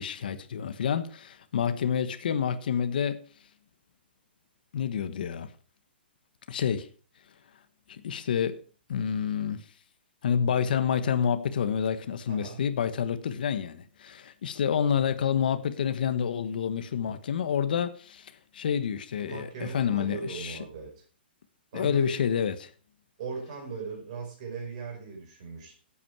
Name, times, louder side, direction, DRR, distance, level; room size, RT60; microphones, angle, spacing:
voice 1, 0.0-3.2 4.7-5.5 6.5-6.9 7.9-8.6 8.9-9.6 10.2-20.6 21.7-22.6, left 8 dB, 50° left, 1.2 m, -28 dB
voice 2, 1.5-1.8 12.3-12.6 19.2-21.0 21.7-22.2 23.2-25.8, right 4 dB, 35° right, 5.1 m, -38 dB
13.0 x 8.6 x 4.7 m
hypercardioid pair, 180°, 6 cm